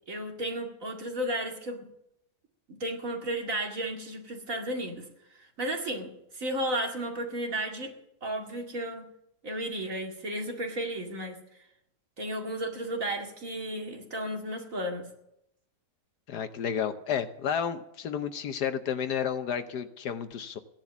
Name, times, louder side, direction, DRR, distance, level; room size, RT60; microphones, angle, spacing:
voice 1, 0.1-1.9 2.7-5.1 5.6-7.9 8.2-9.1 9.4-11.4 12.2-15.0, right 1 dB, 45° right, 1 dB, 2.6 m, -33 dB
voice 2, 16.3-20.6, left 8 dB, 70° left, 9 dB, 1.3 m, -31 dB
16.5 x 10.5 x 7.2 m, 0.81 s
omnidirectional pair, 1.9 m